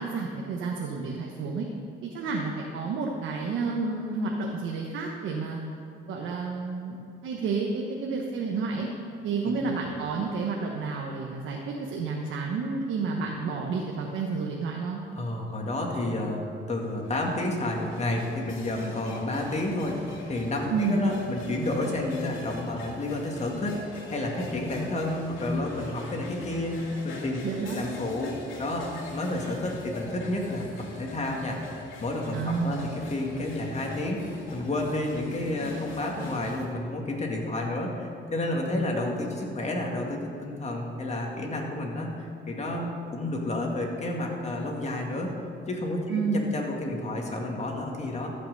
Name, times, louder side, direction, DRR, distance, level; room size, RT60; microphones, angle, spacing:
voice 1, 0.0-1.7 2.0-5.6 6.0-7.0 7.2-8.9 9.2-15.0 20.7-21.0 27.4-27.8 32.3-32.9 46.1-46.4, right 4 dB, 80° right, -1 dB, 1.2 m, -30 dB
voice 2, 15.1-16.4 16.7-20.0 20.3-27.4 27.7-28.3 28.6-30.7 31.0-31.6 32.0-45.3 45.7-48.3, left 1 dB, 35° left, 0 dB, 2.3 m, -30 dB
sound 1, 16.8-36.7, left 2 dB, 80° left, 2.3 m, -44 dB
14.0 x 6.0 x 6.7 m, 2.6 s
cardioid pair, 90°, 20 cm